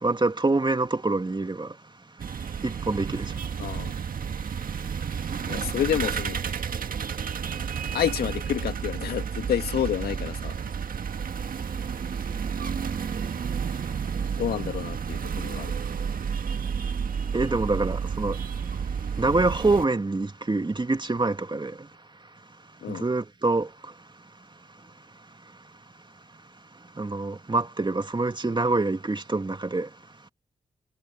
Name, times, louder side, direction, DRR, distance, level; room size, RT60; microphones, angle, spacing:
voice 1, 0.0-1.8 2.6-3.3 17.3-18.4 19.2-21.9 22.9-23.9 27.0-29.9, right 3 dB, 30° right, 2.5 m, -26 dB
sound 1, 2.2-19.9, right 6 dB, 65° right, 1.7 m, -31 dB
voice 2, 3.6-3.9 5.5-6.4 7.9-10.6 14.3-15.7 22.8-23.1, left 10 dB, 85° left, 1.9 m, -29 dB
supercardioid pair, 40°, 16 cm